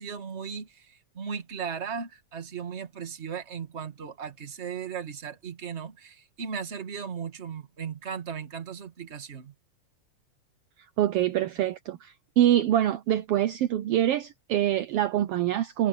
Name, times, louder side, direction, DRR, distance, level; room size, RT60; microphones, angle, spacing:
voice 1, 0.0-9.5, right 7 dB, 30° right, 1.5 m, -37 dB
voice 2, 11.0-15.9, right 12 dB, 80° right, 1.3 m, -25 dB
omnidirectional pair, 3.5 m